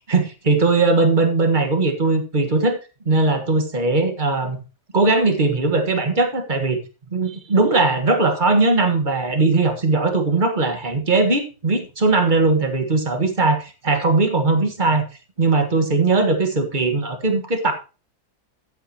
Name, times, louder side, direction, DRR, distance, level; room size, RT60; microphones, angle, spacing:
voice 1, 0.1-2.8 3.0-4.6 4.9-6.8 7.1-15.0 15.4-17.7, right 3 dB, 30° right, 6 dB, 1.6 m, -19 dB
13.5 x 8.5 x 2.9 m, 0.32 s
omnidirectional pair, 1.6 m